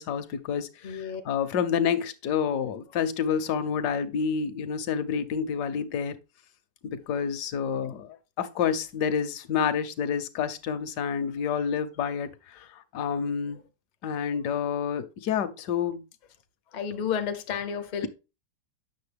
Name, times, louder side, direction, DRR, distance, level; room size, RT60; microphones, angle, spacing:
voice 1, 0.0-6.2 6.8-13.6 14.0-16.0, left 7 dB, 75° left, 1.3 m, -29 dB
voice 2, 0.8-1.2 16.7-18.1, left 7 dB, 50° left, 0.5 m, -31 dB
8.5 x 6.4 x 3.4 m
omnidirectional pair, 1.9 m